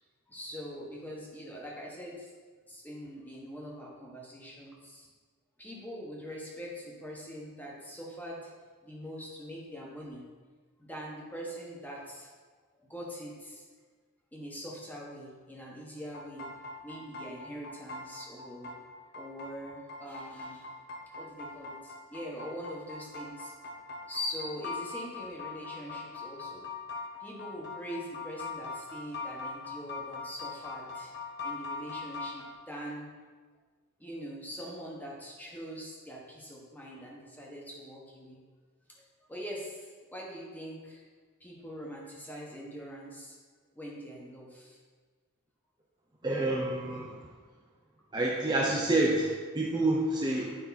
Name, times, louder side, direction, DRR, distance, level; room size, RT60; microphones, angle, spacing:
voice 1, 0.3-2.3 2.7-5.1 5.6-8.5 8.8-10.3 10.8-12.3 12.8-13.7 14.3-16.5 16.8-18.7 19.1-20.7 21.2-23.5 24.1-26.7 27.2-31.2 31.4-33.1 34.0-38.4 39.3-41.1 41.4-43.4 43.7-44.8, equal, 10° left, -3 dB, 1.4 m, -43 dB
sound 1, 16.0-32.5, left 4 dB, 50° left, 1.0 m, -42 dB
voice 2, 46.2-47.2 48.1-50.6, right 2 dB, 20° right, -3 dB, 0.7 m, -28 dB
9.4 x 5.4 x 4.2 m, 1.5 s
head